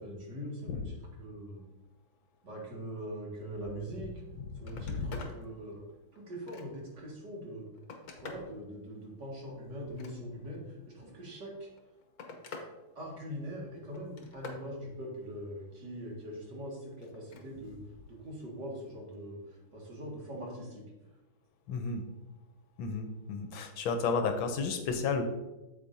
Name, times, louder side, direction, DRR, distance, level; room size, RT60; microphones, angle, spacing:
voice 1, 0.0-1.7 2.4-4.2 4.6-5.8 6.1-7.7 8.2-11.7 13.0-17.8 18.1-20.8, equal, 55° right, -2 dB, 2.4 m, -42 dB
Telephone, 4.1-4.3 4.6-5.4 5.9-6.9 7.5-8.5 9.8-10.6 11.6-12.7 13.1-13.5 13.9-14.7 17.1-17.5 18.9-19.0, left 4 dB, 55° left, 1.2 m, -47 dB
voice 2, 4.5-5.2 21.7-22.1 22.8-25.2, left 4 dB, 75° left, 6 dB, 1.4 m, -32 dB
8.2 x 7.3 x 2.6 m, 1.1 s
omnidirectional pair, 2.4 m